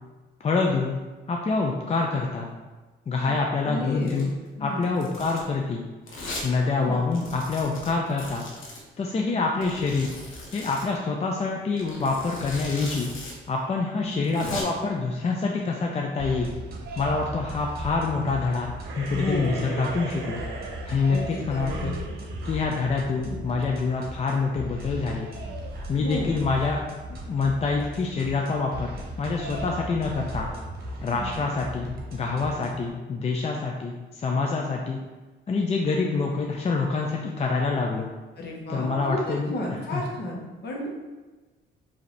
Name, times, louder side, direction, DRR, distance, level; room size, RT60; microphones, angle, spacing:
voice 1, 0.4-1.0 1.3-2.5 3.1-4.3 4.6-5.8 6.4-8.4 9.0-10.1 10.5-13.1 13.5-16.5 17.0-20.4 20.9-21.9 22.4-25.3 25.9-26.8 27.1-28.9 29.2-30.5 31.0-35.0 35.5-38.1 38.7-39.5 39.9-40.0, left 4 dB, 35° left, 0 dB, 0.4 m, -26 dB
voice 2, 3.6-4.3 4.6-4.9 6.8-7.0 14.0-14.5 19.1-19.6 21.1-21.8 23.2-23.4 26.0-26.3 31.0-31.4 38.4-40.9, left 1 dB, 55° left, -2 dB, 1.2 m, -32 dB
Domestic sounds home sounds, 4.0-4.3 4.8-5.5 6.1-6.5 6.8-6.9 7.1-8.8 9.6-10.9 11.8-13.3 13.6-13.7 14.1-14.6, left 2 dB, 80° left, 1.0 m, -38 dB
sound 1, 16.2-32.9, equal, 50° right, 1.0 m, -37 dB
sound 2, 18.8-23.6, right 4 dB, 90° right, 0.7 m, -38 dB
4.9 x 2.8 x 3.2 m, 1.2 s
cardioid pair, 90°, 20 cm